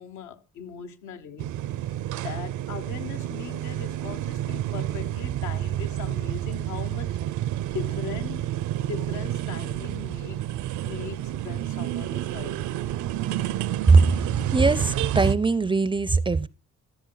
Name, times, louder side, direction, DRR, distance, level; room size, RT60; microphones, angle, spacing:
voice 1, 0.0-1.5 2.2-7.2 7.7-8.5 8.8-10.4 10.8-12.7, left 7 dB, 80° left, 1.1 m, -39 dB
sound 1, 1.4-15.4, right 13 dB, 75° right, 0.6 m, -30 dB
voice 2, 14.5-16.5, right 4 dB, 15° right, 0.4 m, -20 dB
13.5 x 6.9 x 3.9 m
cardioid pair, 90°, 30 cm